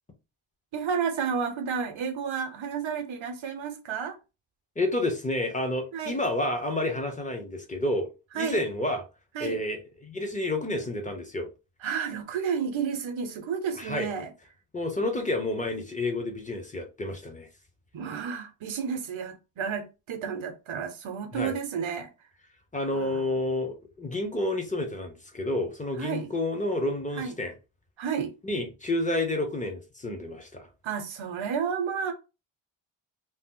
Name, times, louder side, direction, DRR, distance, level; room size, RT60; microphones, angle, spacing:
voice 1, 0.7-4.2 5.9-6.2 8.3-8.6 9.3-9.6 11.8-14.3 17.9-22.1 22.9-23.4 26.0-26.3 27.2-27.3 28.0-28.3 30.8-32.1, right 6 dB, 70° right, 0.8 m, -31 dB
voice 2, 4.8-8.1 8.3-9.0 9.4-11.5 13.8-14.1 14.7-17.5 21.3-21.5 22.7-27.5 28.4-30.7, left 1 dB, 15° left, 0.8 m, -30 dB
2.8 x 2.1 x 3.7 m
wide cardioid pair, 120°, 49 cm